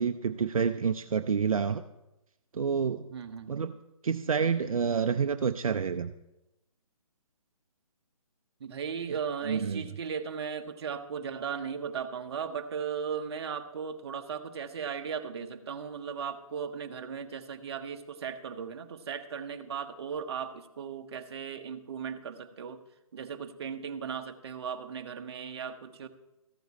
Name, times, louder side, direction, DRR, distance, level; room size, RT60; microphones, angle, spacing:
voice 1, 0.0-1.8 2.5-3.0 3.5-3.8 4.0-6.1 9.5-9.8, right 6 dB, 70° right, 8 dB, 0.6 m, -28 dB
voice 2, 3.1-3.7 8.6-22.8 23.1-26.1, right 7 dB, 45° right, 7 dB, 1.0 m, -37 dB
14.5 x 9.2 x 4.2 m, 0.94 s
figure-of-eight pair, 150°, 18 cm